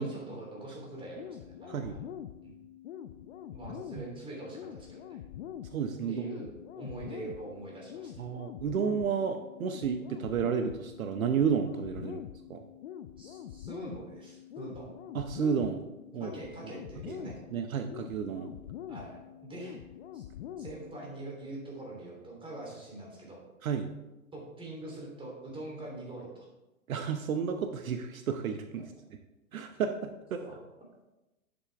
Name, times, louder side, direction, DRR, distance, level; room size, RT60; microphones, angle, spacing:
voice 1, 0.0-2.0 2.4-2.6 3.5-5.2 6.1-6.5 6.7-8.3 12.1-12.2 13.2-14.9 16.2-17.4 18.9-19.8 20.1-20.2 20.6-23.4 24.3-26.5 30.4-30.6, right 2 dB, 10° right, -3 dB, 3.1 m, -43 dB
sound 1, 1.2-21.2, left 10 dB, 50° left, 0.7 m, -45 dB
voice 2, 5.7-6.2 8.2-12.2 12.5-12.6 15.1-15.8 16.1-16.3 17.1-18.5 23.6-23.9 26.9-28.9 29.5-30.4, right 7 dB, 70° right, 7 dB, 0.9 m, -32 dB
11.0 x 7.0 x 3.4 m, 1.0 s
hypercardioid pair, 115°, 43 cm